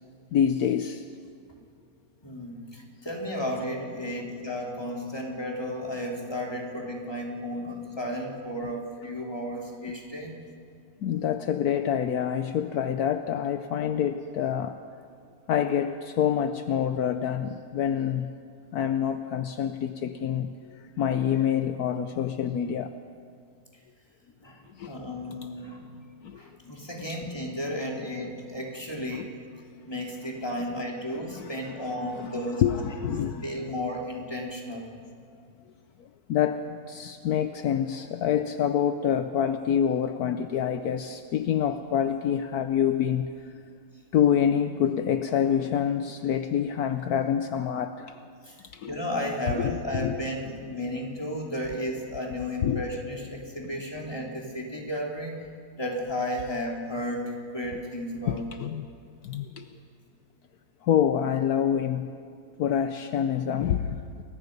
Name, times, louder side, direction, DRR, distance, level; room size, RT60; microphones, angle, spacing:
voice 1, 0.3-1.1 11.0-14.8 15.5-18.3 18.7-22.9 24.7-25.0 26.2-26.4 29.1-29.3 31.4-33.7 36.0-43.5 44.1-48.2 48.7-48.9 49.5-50.2 52.6-52.8 58.3-58.9 59.2-59.7 60.8-62.1 62.6-64.2, left 9 dB, 70° left, 8 dB, 1.2 m, -27 dB
voice 2, 2.2-10.4 24.4-26.0 26.3-29.3 29.8-32.6 33.0-34.9 48.4-48.5 48.9-55.5 55.8-58.5, equal, 15° left, -1 dB, 3.2 m, -33 dB
29.0 x 22.5 x 5.4 m, 2.2 s
omnidirectional pair, 1.7 m